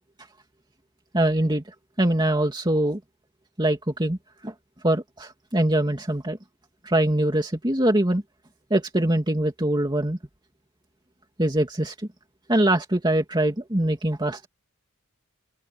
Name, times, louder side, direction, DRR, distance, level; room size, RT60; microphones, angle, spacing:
voice 1, 1.1-1.6 2.0-3.0 3.6-4.2 4.4-4.5 4.8-6.4 6.8-8.2 8.7-10.2 11.4-11.9 12.5-14.5, right 1 dB, 20° right, 2.7 m, -23 dB
open air
head